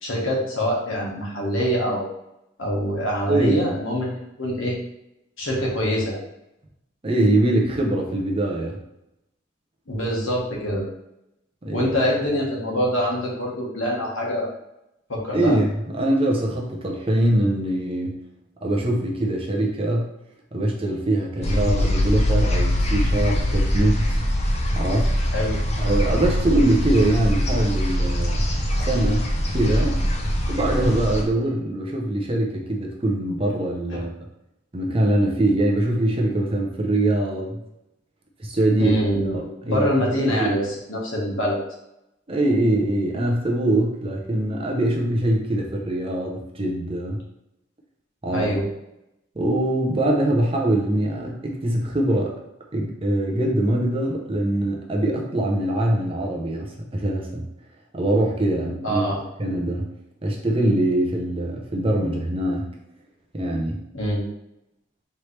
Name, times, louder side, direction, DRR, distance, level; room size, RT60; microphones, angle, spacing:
voice 1, 0.0-2.1 2.6-4.8 5.4-6.2 9.9-10.9 11.7-14.5 15.1-15.6 21.4-21.5 25.3-25.9 28.8-28.9 29.6-29.8 33.9-34.0 38.8-39.3 39.7-41.6 48.3-48.7 58.8-59.2 63.9-64.3, equal, 80° left, -3 dB, 1.3 m, -25 dB
voice 2, 3.3-3.7 7.0-8.8 11.6-11.9 15.3-18.2 18.6-20.1 20.5-24.0 24.7-25.1 25.8-28.4 28.9-29.9 30.5-34.1 34.7-37.6 38.4-39.0 39.3-39.9 40.2-40.6 42.3-47.2 48.2-48.5 49.4-52.4 52.7-57.5 57.9-59.0 59.4-59.9 60.2-62.7 63.3-63.8, right 1 dB, 30° right, 0 dB, 0.6 m, -23 dB
sound 1, 21.4-31.2, equal, 35° left, 0.6 m, -22 dB
4.5 x 3.2 x 3.2 m, 0.86 s
head